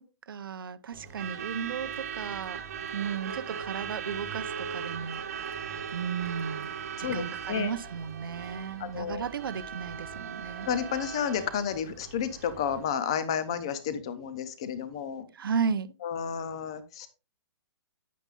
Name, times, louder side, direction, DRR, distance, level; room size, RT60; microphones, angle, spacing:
voice 1, 0.3-2.6 2.9-6.7 7.0-10.7 15.3-15.9, right 6 dB, 50° right, 0.6 m, -34 dB
Truck / Alarm, 0.9-12.9, right 7 dB, 30° right, 1.1 m, -39 dB
voice 2, 7.0-7.7 8.8-9.2 10.7-15.2 16.0-17.1, left 8 dB, 10° left, 0.4 m, -31 dB
9.5 x 9.1 x 2.4 m
hypercardioid pair, 180°, 14 cm